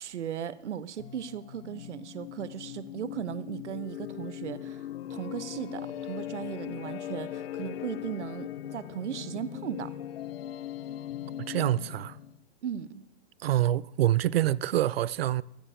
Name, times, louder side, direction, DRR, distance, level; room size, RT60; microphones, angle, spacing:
voice 1, 0.0-9.9 12.6-13.0, right 8 dB, 85° right, 1.0 m, -37 dB
sound 1, 1.0-12.4, left 11 dB, 60° left, 0.7 m, -39 dB
voice 2, 11.5-12.2 13.4-15.4, right 13 dB, 60° right, 0.5 m, -26 dB
14.5 x 6.8 x 8.9 m
hypercardioid pair, 155°, 34 cm